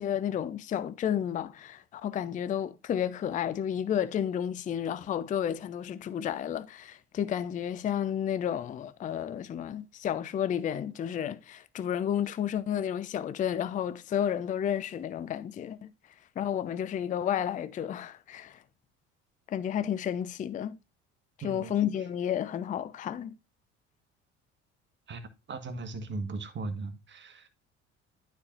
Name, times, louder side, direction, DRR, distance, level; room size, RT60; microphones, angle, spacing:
voice 1, 0.0-15.9 16.4-18.6 19.5-20.8 21.4-23.3, left 9 dB, 25° left, 0.5 m, -31 dB
voice 2, 21.4-21.7 25.1-25.2 25.5-27.5, right 3 dB, 30° right, 1.3 m, -37 dB
12.0 x 4.5 x 2.5 m
figure-of-eight pair, 55°, 35 cm